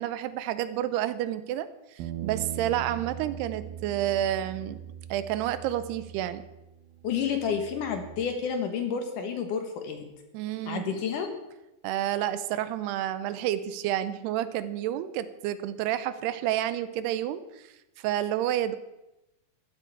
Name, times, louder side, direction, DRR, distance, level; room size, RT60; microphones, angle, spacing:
voice 1, 0.0-4.8 5.1-6.4 10.3-10.9 11.8-17.6 18.0-18.8, right 12 dB, 90° right, 13 dB, 2.7 m, -30 dB
sound 1, 2.0-8.2, right 10 dB, 70° right, 2.6 m, -41 dB
voice 2, 7.0-10.1 10.7-11.3, left 7 dB, 65° left, 5 dB, 2.4 m, -30 dB
15.5 x 12.5 x 4.8 m, 0.96 s
omnidirectional pair, 4.7 m